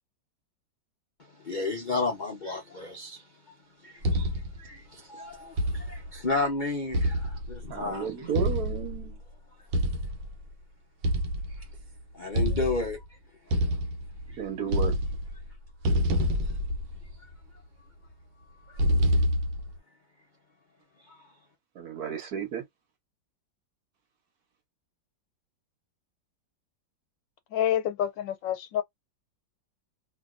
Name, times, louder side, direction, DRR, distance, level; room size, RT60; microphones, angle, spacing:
voice 1, 1.4-3.2 3.8-4.3 4.6-8.1 12.1-13.0 14.3-14.4 21.1-21.3, left 3 dB, 50° left, 0.5 m, -32 dB
sound 1, 4.0-4.7 5.6-6.2 6.9-7.8 8.4-9.1 9.7-10.3 11.0-11.8 12.4-13.0 13.5-14.3 14.6-15.5 15.8-17.3 18.8-19.8, equal, 80° right, 1.4 m, -27 dB
voice 2, 7.7-9.2 14.3-15.0 21.7-22.7, right 8 dB, 60° right, 1.3 m, -33 dB
voice 3, 27.5-28.8, left 11 dB, 85° left, 1.4 m, -28 dB
2.8 x 2.8 x 2.4 m
omnidirectional pair, 2.0 m